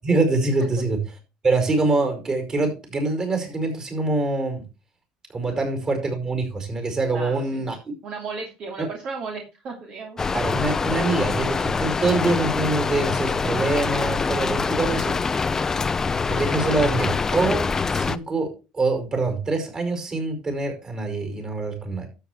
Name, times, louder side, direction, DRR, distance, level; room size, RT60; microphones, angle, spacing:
voice 1, 0.0-1.0 1.4-4.6 5.3-7.7 8.8-8.9 10.3-15.1 16.3-22.1, right 3 dB, 30° right, 5 dB, 5.2 m, -24 dB
voice 2, 7.1-7.7 8.0-10.2, right 4 dB, 50° right, 1 dB, 2.6 m, -35 dB
Rain, 10.2-18.2, left 4 dB, 20° left, 0.6 m, -24 dB
12.5 x 8.1 x 3.3 m, 0.29 s
cardioid pair, 110°, 2 cm